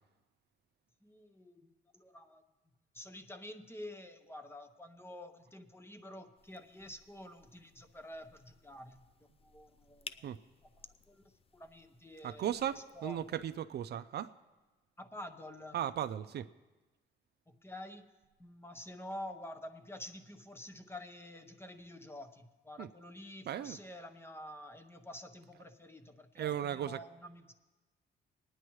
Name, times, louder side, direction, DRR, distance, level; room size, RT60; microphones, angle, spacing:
voice 1, 1.0-2.4 2.9-9.0 9.4-10.3 10.6-10.7 11.1-13.5 15.0-15.8 17.5-18.1 18.4-27.5, left 1 dB, 10° left, 8 dB, 1.0 m, -49 dB
sound 1, 6.4-13.6, left 5 dB, 30° left, 0.5 m, -56 dB
voice 2, 12.2-14.3 15.7-16.5 22.8-22.9 23.5-23.8 25.5-25.6 26.3-27.0, right 10 dB, 55° right, 12 dB, 0.4 m, -36 dB
21.0 x 9.9 x 3.1 m, 1.2 s
cardioid pair, 90°, 20 cm